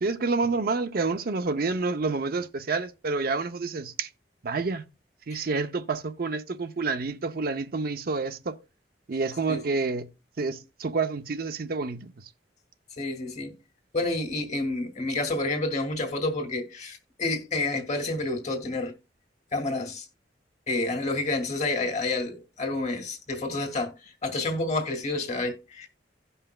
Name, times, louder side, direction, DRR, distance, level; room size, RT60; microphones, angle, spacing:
voice 1, 0.0-4.1 4.4-4.8 5.3-8.6 9.1-10.1 10.4-12.1, right 4 dB, 55° right, 0.6 m, -28 dB
voice 2, 13.0-13.5 13.9-18.9 19.5-20.1 20.7-25.9, left 2 dB, 40° left, 1.8 m, -29 dB
16.5 x 5.6 x 2.3 m
head